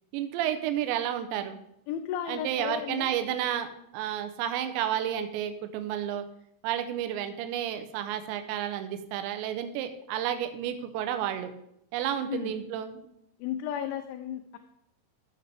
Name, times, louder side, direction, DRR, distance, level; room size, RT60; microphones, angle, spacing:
voice 1, 0.1-1.6 2.3-3.7 3.9-6.2 6.6-11.5 11.9-13.1, right 10 dB, 80° right, 8 dB, 2.9 m, -31 dB
voice 2, 1.9-3.1 12.3-12.5 13.4-14.6, left 10 dB, 90° left, 5 dB, 3.0 m, -34 dB
13.0 x 6.8 x 3.4 m, 0.76 s
omnidirectional pair, 5.2 m